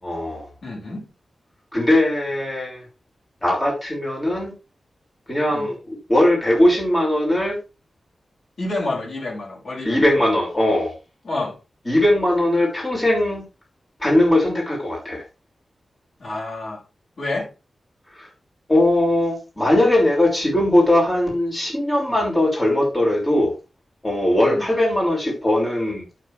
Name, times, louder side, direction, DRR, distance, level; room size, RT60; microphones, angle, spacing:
voice 1, 0.0-0.5 1.7-2.8 3.4-4.5 5.3-7.6 9.8-10.9 11.9-13.4 14.0-15.2 18.2-18.3 18.7-23.5 24.0-26.0, left 1 dB, 20° left, 6.2 m, -19 dB
voice 2, 0.6-1.1 5.5-5.7 8.6-10.2 11.2-11.6 16.2-16.8 17.2-17.5 24.4-24.7, left 2 dB, 60° left, 6.5 m, -29 dB
12.0 x 6.8 x 3.4 m
wide cardioid pair, 160°, 0 cm